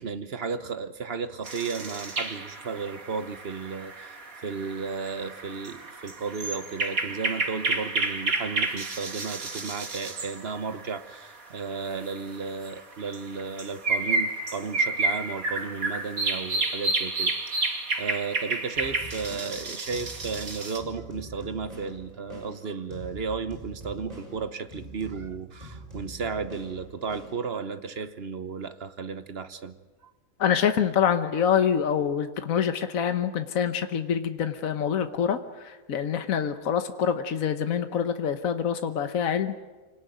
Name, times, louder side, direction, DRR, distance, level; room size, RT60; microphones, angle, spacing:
voice 1, 0.0-29.8, right 5 dB, 50° right, 11 dB, 1.2 m, -34 dB
sound 1, 1.4-11.1 11.6-11.7 12.0-20.8, right 3 dB, 80° right, 2.8 m, -30 dB
sound 2, 18.7-27.9, right 1 dB, 25° right, 6.3 m, -44 dB
voice 2, 30.4-39.5, left 8 dB, 75° left, 8 dB, 1.5 m, -26 dB
25.5 x 19.0 x 9.2 m, 1.2 s
omnidirectional pair, 1.4 m